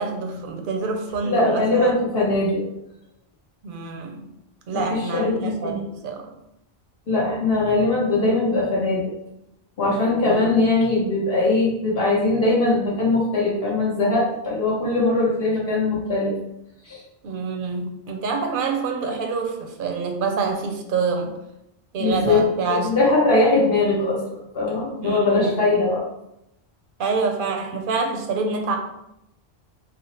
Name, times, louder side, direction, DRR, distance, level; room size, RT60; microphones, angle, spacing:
voice 1, 0.0-1.9 3.6-4.3 4.7-6.3 10.2-10.6 17.2-21.3 21.9-22.9 25.0-25.7 27.0-28.8, right 4 dB, 65° right, 4 dB, 0.7 m, -26 dB
voice 2, 1.2-2.6 4.7-5.8 7.1-9.1 9.8-16.3 16.9-17.0 22.0-22.4 22.7-24.2 24.5-26.0, left 2 dB, 70° left, -5 dB, 1.1 m, -21 dB
3.3 x 2.0 x 4.0 m, 0.83 s
omnidirectional pair, 1.1 m